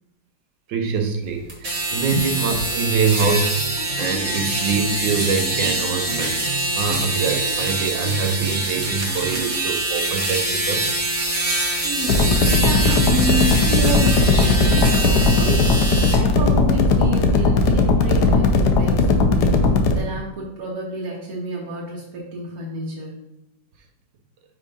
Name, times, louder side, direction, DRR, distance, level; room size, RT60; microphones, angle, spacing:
voice 1, 0.7-3.6 4.0-6.4 6.7-10.8 12.8-13.0, right 5 dB, 80° right, 5 dB, 1.5 m, -24 dB
sound 1, 1.5-16.2, right 1 dB, 40° right, 1.6 m, -24 dB
sound 2, 3.2-9.7, right 4 dB, 30° left, 1.1 m, -34 dB
voice 2, 11.8-23.2, right 2 dB, 55° right, -4 dB, 1.4 m, -30 dB
sound 3, 12.1-20.0, left 3 dB, 70° left, 1.2 m, -17 dB
5.3 x 3.7 x 5.2 m, 0.82 s
omnidirectional pair, 2.0 m